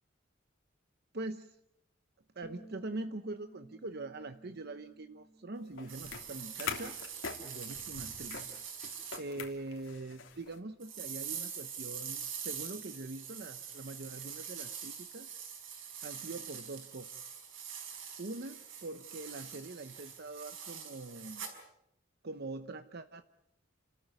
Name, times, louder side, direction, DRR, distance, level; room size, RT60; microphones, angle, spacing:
voice 1, 1.1-1.6 2.3-7.0 7.4-8.5 9.2-15.3 16.0-17.3 18.2-21.5 22.2-23.2, right 2 dB, 55° right, 9 dB, 0.9 m, -43 dB
Bass guitar, 2.4-8.7, right 1 dB, 10° left, 1.6 m, -58 dB
sound 1, 5.7-10.6, left 5 dB, 75° left, 3.1 m, -43 dB
sound 2, 5.9-9.2 10.8-21.6, right 7 dB, 80° right, 5.1 m, -44 dB
29.5 x 14.0 x 9.4 m, 0.82 s
head